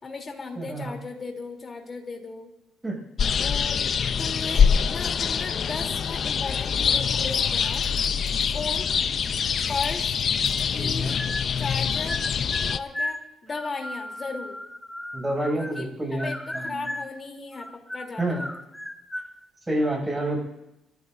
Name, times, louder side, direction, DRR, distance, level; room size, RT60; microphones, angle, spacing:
voice 1, 0.0-2.5 3.4-3.8 4.2-7.8 8.5-8.9 9.7-10.2 10.7-11.1 11.6-12.2 12.7-14.6 15.6-18.5, left 4 dB, 35° left, 2 dB, 3.3 m, -36 dB
voice 2, 0.6-1.0 2.8-3.0 10.8-11.1 15.1-16.9 18.2-18.5 19.7-20.4, right 1 dB, 15° right, 0 dB, 6.9 m, -28 dB
sound 1, 3.2-12.8, left 7 dB, 55° left, 0.6 m, -24 dB
sound 2, 7.6-8.5 9.2-10.8, left 7 dB, 80° left, 4.3 m, -46 dB
sound 3, 11.2-11.8 12.1-15.9 16.2-17.2 17.5-19.3, left 1 dB, 5° left, 0.9 m, -35 dB
29.5 x 14.0 x 2.7 m, 0.91 s
cardioid pair, 90°, 0 cm